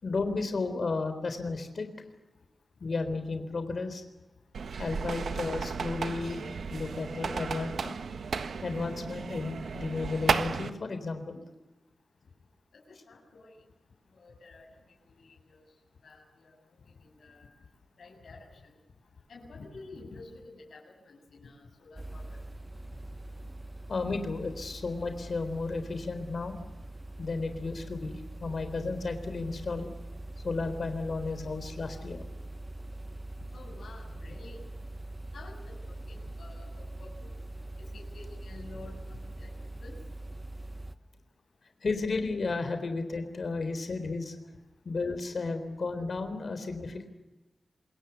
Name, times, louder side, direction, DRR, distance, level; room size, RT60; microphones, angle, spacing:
voice 1, 0.0-1.9 2.8-4.0 4.8-6.4 6.7-8.0 8.6-11.4 23.9-26.6 27.2-29.9 30.4-32.2 41.8-44.4 44.8-47.1, left 3 dB, 50° left, 9 dB, 3.8 m, -33 dB
sound 1, 4.5-10.7, right 5 dB, 75° right, 1.5 m, -34 dB
voice 2, 12.7-13.5 14.1-14.7 15.2-15.6 16.0-16.5 17.0-17.5 18.0-18.7 19.3-22.4 33.5-34.6 35.3-37.3 37.8-39.5 39.8-40.0 43.4-43.5, left 3 dB, 70° left, 1 dB, 7.5 m, -50 dB
sound 2, 22.0-41.0, right 1 dB, 15° right, 1.1 m, -43 dB
27.0 x 21.5 x 7.0 m, 1.1 s
wide cardioid pair, 150°, 0 cm